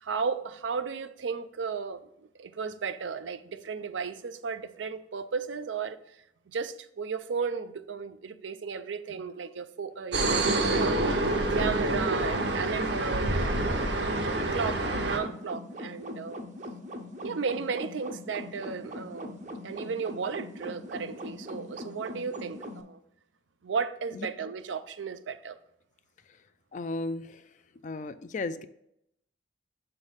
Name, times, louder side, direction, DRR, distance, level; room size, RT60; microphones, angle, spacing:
voice 1, 0.0-6.0 6.5-11.0 11.5-16.4 17.2-23.0 23.6-25.6, right 5 dB, 85° right, 0.5 m, -35 dB
sound 1, 10.1-15.2, right 2 dB, 70° right, 1.0 m, -27 dB
sound 2, 12.8-22.8, left 1 dB, 40° right, 0.6 m, -41 dB
voice 2, 26.7-27.4 27.8-28.6, left 3 dB, 40° left, 0.3 m, -34 dB
7.1 x 3.4 x 5.5 m
head